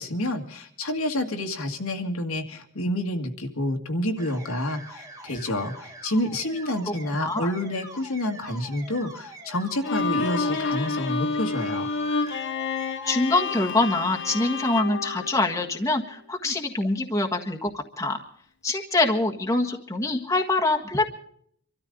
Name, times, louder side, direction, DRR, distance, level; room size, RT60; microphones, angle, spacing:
voice 1, 0.0-11.9, left 1 dB, 75° left, 3 dB, 2.0 m, -29 dB
sound 1, 4.2-13.2, right 2 dB, 15° right, 1.9 m, -44 dB
voice 2, 6.9-7.5 13.0-18.2 18.6-21.1, left 2 dB, 15° left, 1 dB, 1.6 m, -25 dB
Bowed string instrument, 9.8-16.1, left 4 dB, 55° left, 1.2 m, -29 dB
25.5 x 13.5 x 3.9 m, 0.65 s
head